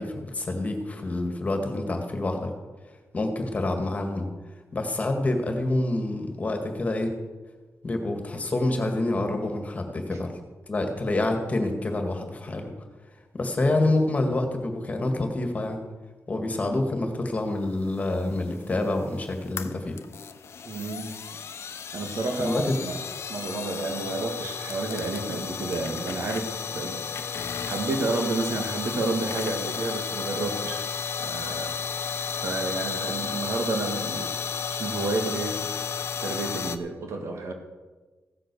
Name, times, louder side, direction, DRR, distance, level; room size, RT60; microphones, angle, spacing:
voice 1, 0.0-2.5 3.1-4.2 4.7-7.1 7.8-10.3 10.7-12.7 13.3-15.8 16.3-20.0 22.4-22.7, left 2 dB, 30° left, 4 dB, 1.8 m, -27 dB
sound 1, 17.9-36.8, left 6 dB, 60° left, 0.8 m, -33 dB
voice 2, 20.7-21.1 21.9-23.0 23.3-27.0 27.3-30.9 31.2-31.8 32.4-34.3 34.7-35.7 36.2-37.5, right 3 dB, 65° right, 4 dB, 2.0 m, -30 dB
15.5 x 7.7 x 6.9 m, 1.3 s
wide cardioid pair, 135°, 5 cm